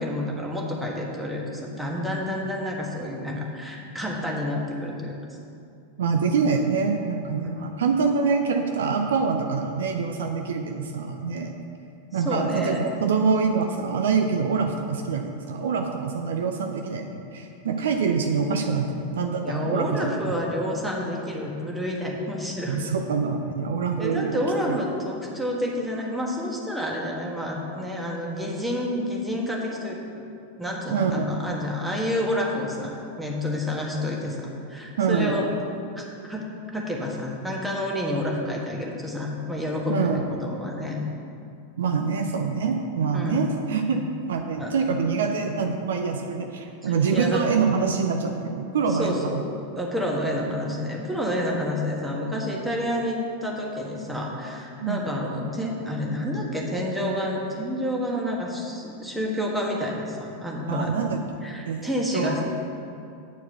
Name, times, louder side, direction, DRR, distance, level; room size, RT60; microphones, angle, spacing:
voice 1, 0.0-5.4 7.4-7.5 12.2-12.8 19.4-22.8 24.0-30.3 30.6-32.9 33.2-35.5 35.9-41.0 43.1-43.5 44.6-44.7 46.8-47.5 48.9-49.4 49.8-60.9 61.4-62.4, left 1 dB, 5° right, -2 dB, 1.5 m, -29 dB
voice 2, 6.0-11.5 12.1-20.3 22.7-24.4 24.7-24.8 30.9-31.3 35.0-35.4 39.9-40.2 41.8-44.0 44.3-49.4 54.8-55.0 60.7-61.2 61.7-61.9 62.1-62.4, right 5 dB, 60° right, 4 dB, 0.5 m, -25 dB
9.2 x 4.6 x 7.0 m, 2.6 s
figure-of-eight pair, 90°, 0 cm